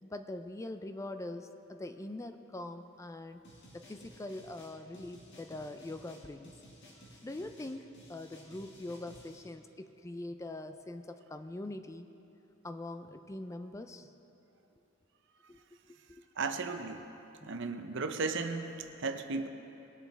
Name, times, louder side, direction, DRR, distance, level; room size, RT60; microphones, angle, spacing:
voice 1, 0.0-3.4 3.7-6.5 7.2-12.1 12.6-14.1 15.5-15.6 16.1-16.2 17.4-17.5, left 2 dB, 15° left, 9 dB, 0.4 m, -43 dB
sound 1, 3.4-9.4, equal, 60° left, 1.9 m, -56 dB
voice 2, 16.4-17.0 17.4-19.5, right 4 dB, 65° right, 7 dB, 0.7 m, -35 dB
20.0 x 7.3 x 4.1 m, 3.0 s
head